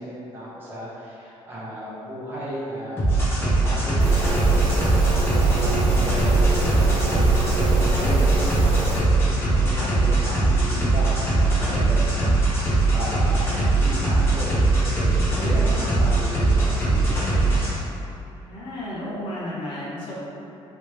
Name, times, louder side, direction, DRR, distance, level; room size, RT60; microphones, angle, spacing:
voice 1, 0.0-7.3 7.6-8.6 9.2-14.6 15.0-17.5, equal, 20° right, -7 dB, 0.8 m, -35 dB
sound 1, 3.0-17.7, right 2 dB, 20° left, 0.9 m, -21 dB
sound 2, 4.0-9.0, right 1 dB, 70° right, 0.7 m, -25 dB
voice 2, 15.1-15.9 18.3-20.1, left 1 dB, 50° left, -7 dB, 0.8 m, -33 dB
3.1 x 3.1 x 3.0 m, 2.9 s
cardioid pair, 170°, 11 cm